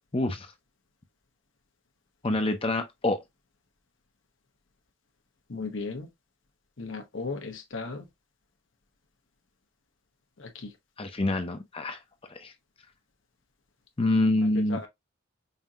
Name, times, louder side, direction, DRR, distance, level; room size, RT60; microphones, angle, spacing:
voice 1, 0.1-0.5 2.2-3.2 11.0-12.0 12.3-12.5 14.0-14.8, left 2 dB, 30° left, 0.6 m, -26 dB
voice 2, 5.5-6.1 6.8-8.1 10.4-10.7 14.5-14.9, left 4 dB, 80° left, 1.0 m, -36 dB
5.4 x 2.8 x 2.4 m
head